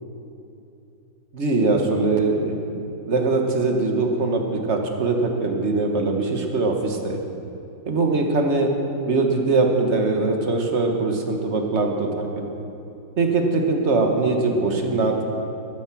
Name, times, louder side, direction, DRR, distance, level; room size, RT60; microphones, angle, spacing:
voice 1, 1.3-2.6 3.1-7.2 7.9-8.7 9.0-12.5 13.2-15.2, right 3 dB, 35° right, 2 dB, 1.4 m, -22 dB
12.5 x 12.5 x 6.1 m, 2.8 s
omnidirectional pair, 2.3 m